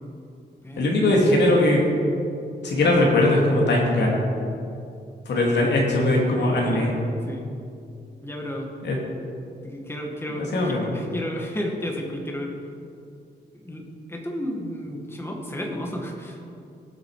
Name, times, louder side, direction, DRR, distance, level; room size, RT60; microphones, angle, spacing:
voice 1, 0.8-1.8 2.6-4.2 5.3-6.9 8.8-9.0 10.3-10.9, left 1 dB, 85° left, -2 dB, 2.6 m, -20 dB
voice 2, 6.3-7.0 7.3-7.5 8.2-8.7 9.6-12.5 13.6-16.4, equal, 15° left, 0 dB, 1.9 m, -32 dB
18.5 x 8.1 x 5.0 m, 2.5 s
wide cardioid pair, 130°, 18 cm